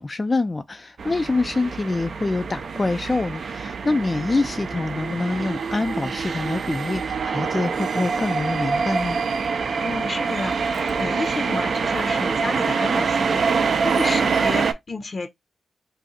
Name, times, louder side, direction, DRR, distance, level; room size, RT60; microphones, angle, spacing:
voice 1, 0.0-9.2, left 3 dB, 35° left, 0.3 m, -25 dB
sound 1, 1.0-14.7, right 5 dB, 65° right, 0.4 m, -25 dB
voice 2, 9.8-15.3, left 3 dB, 50° left, 0.7 m, -31 dB
2.6 x 2.4 x 3.9 m
cardioid pair, 50°, 0 cm